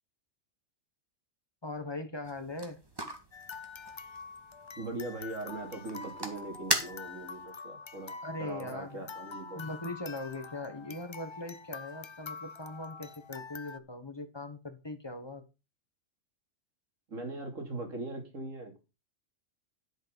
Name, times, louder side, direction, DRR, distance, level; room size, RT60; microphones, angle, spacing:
voice 1, 1.6-2.8 8.2-9.1 9.5-15.4, left 2 dB, 20° left, 1.4 m, -40 dB
sound 1, 2.2-7.4, right 1 dB, 20° right, 1.7 m, -39 dB
sound 2, 3.3-13.8, left 4 dB, 45° left, 0.4 m, -46 dB
voice 2, 4.8-9.6 17.1-18.8, right 2 dB, 75° right, 3.2 m, -40 dB
11.0 x 6.4 x 5.4 m
omnidirectional pair, 1.3 m